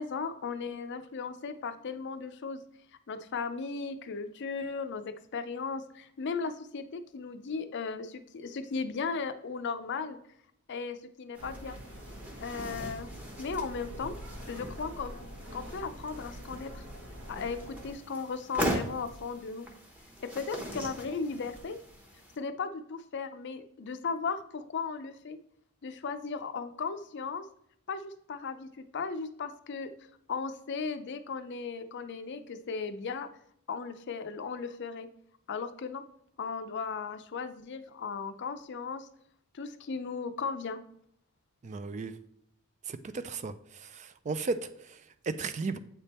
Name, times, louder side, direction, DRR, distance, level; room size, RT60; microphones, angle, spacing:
voice 1, 0.0-2.6 3.1-10.2 10.7-11.8 12.4-13.1 13.4-14.2 14.5-15.2 15.5-16.9 17.3-19.7 20.2-21.8 22.4-25.4 25.8-27.5 27.9-29.9 30.3-33.3 33.7-35.1 35.5-36.0 36.4-39.1 39.5-40.8, left 5 dB, 50° left, 10 dB, 0.5 m, -36 dB
sound 1, 11.3-22.4, equal, 5° right, 0.9 m, -40 dB
sound 2, 11.4-17.9, equal, 60° right, 1.1 m, -46 dB
voice 2, 41.6-42.1 42.9-45.8, right 4 dB, 35° right, 12 dB, 0.3 m, -35 dB
8.1 x 3.4 x 4.2 m, 0.71 s
head